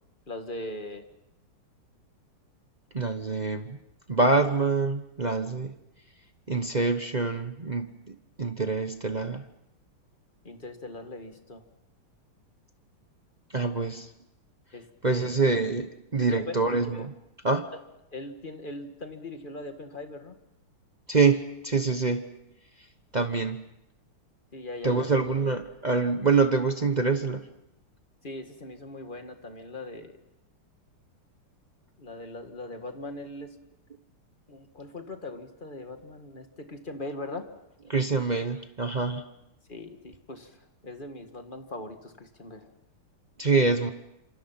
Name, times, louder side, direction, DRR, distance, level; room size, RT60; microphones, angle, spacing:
voice 1, 0.3-1.0 10.4-11.6 13.6-13.7 14.7-15.3 16.2-16.5 17.7-17.8 18.1-20.4 24.5-25.0 28.2-30.2 32.0-33.5 34.5-37.5 39.7-40.6 40.8-42.7, left 2 dB, 25° left, 6 dB, 1.9 m, -40 dB
voice 2, 2.9-3.8 4.1-5.7 6.5-9.4 13.5-14.1 15.0-17.1 17.4-17.7 21.1-22.3 23.1-23.6 24.8-27.5 37.9-39.3 43.4-43.9, right 4 dB, 35° right, 6 dB, 0.7 m, -25 dB
28.0 x 26.5 x 5.8 m, 0.85 s
omnidirectional pair, 2.4 m